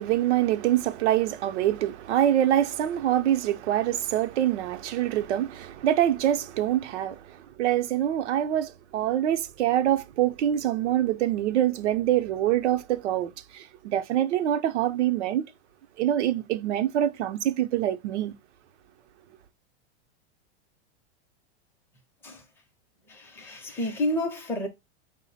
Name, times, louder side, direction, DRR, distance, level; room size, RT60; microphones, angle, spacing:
voice 1, 0.0-15.5 16.0-18.3, right 12 dB, 85° right, 0.5 m, -25 dB
voice 2, 23.1-24.7, left 1 dB, 5° left, 0.5 m, -30 dB
4.8 x 2.0 x 3.9 m
supercardioid pair, 145°, 34 cm